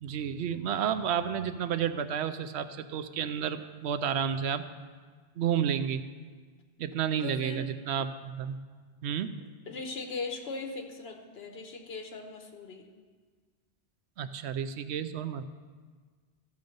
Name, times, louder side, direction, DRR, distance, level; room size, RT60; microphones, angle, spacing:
voice 1, 0.0-4.6 5.4-6.0 6.8-8.6 9.0-9.3 14.2-15.4, right 8 dB, 85° right, 11 dB, 0.9 m, -31 dB
voice 2, 7.2-7.7 9.4-12.9, left 4 dB, 70° left, 4 dB, 1.3 m, -39 dB
14.0 x 6.6 x 5.3 m, 1.5 s
omnidirectional pair, 1.1 m